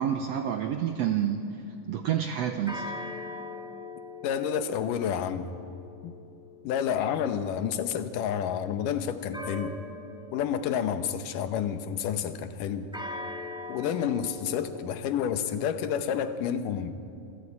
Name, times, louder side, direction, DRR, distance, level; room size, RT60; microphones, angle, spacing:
voice 1, 0.0-1.4 1.9-2.9, right 9 dB, 75° right, 6 dB, 1.5 m, -28 dB
sound 1, 1.0-1.6 2.7-7.5 9.3-11.7 12.9-16.3, left 2 dB, 5° right, 0.7 m, -42 dB
voice 2, 4.2-5.5 6.0-6.2 6.6-9.8 10.3-12.9 13.7-16.9, left 8 dB, 75° left, 10 dB, 2.5 m, -29 dB
26.0 x 15.0 x 8.6 m, 2.7 s
omnidirectional pair, 3.9 m